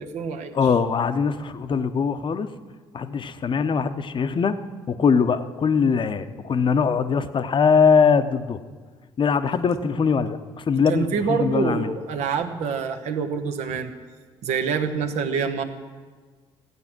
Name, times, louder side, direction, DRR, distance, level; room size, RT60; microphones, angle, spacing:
voice 1, 0.0-0.6 10.9-13.9 14.4-15.6, right 6 dB, 65° right, 6 dB, 1.2 m, -26 dB
voice 2, 0.5-2.5 2.9-4.6 4.9-8.6 9.2-11.9, left 6 dB, 40° left, 10 dB, 0.9 m, -21 dB
15.5 x 8.9 x 6.0 m, 1.5 s
hypercardioid pair, 50°, 12 cm